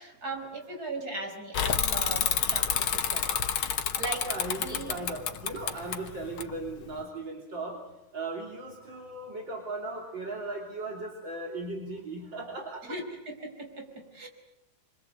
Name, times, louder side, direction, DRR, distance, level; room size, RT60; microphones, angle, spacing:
voice 1, 0.0-3.4 4.0-4.3 4.6-5.0 12.9-14.3, right 2 dB, 45° right, 4 dB, 5.6 m, -38 dB
Bicycle / Mechanisms, 1.5-7.0, left 8 dB, 80° left, 2.1 m, -29 dB
voice 2, 4.2-7.8 8.1-13.0, right 2 dB, 65° right, 0 dB, 3.9 m, -37 dB
29.0 x 25.0 x 8.0 m, 0.85 s
omnidirectional pair, 2.2 m